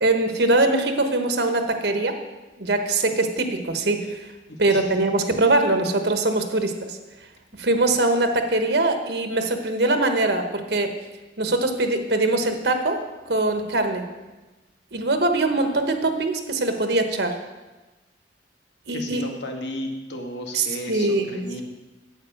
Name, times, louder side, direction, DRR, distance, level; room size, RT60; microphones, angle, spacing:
voice 1, 0.0-2.2 2.6-4.2 4.6-7.0 7.6-10.9 11.4-13.0 13.3-14.0 14.9-17.4 18.9-19.3 20.5-21.6, right 2 dB, 65° right, 6 dB, 1.2 m, -22 dB
voice 2, 18.9-21.6, left 1 dB, 80° left, 2 dB, 1.6 m, -33 dB
9.2 x 8.4 x 6.5 m, 1.2 s
head